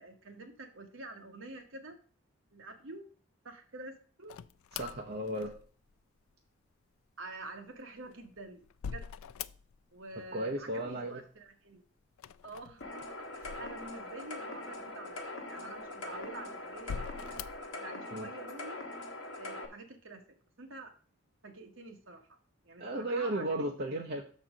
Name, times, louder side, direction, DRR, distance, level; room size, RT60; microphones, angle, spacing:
voice 1, 0.0-2.0 2.5-3.1 3.4-4.4 7.2-9.1 9.9-11.8 12.4-18.8 19.4-20.2 20.6-20.9 21.4-22.4 22.6-23.7, right 2 dB, 65° right, 5 dB, 1.3 m, -48 dB
sound 1, 4.3-5.9 7.8-10.0 10.3-11.0 12.1-14.3 14.8-14.9 15.8-16.3 16.8-17.7, left 7 dB, 80° left, 0.3 m, -44 dB
voice 2, 4.8-5.6 10.3-11.2 18.1-18.3 22.8-24.2, right 1 dB, 45° right, 1 dB, 0.8 m, -34 dB
sound 2, 12.8-19.7, left 2 dB, 60° left, 1.1 m, -42 dB
6.4 x 4.3 x 6.1 m, 0.41 s
head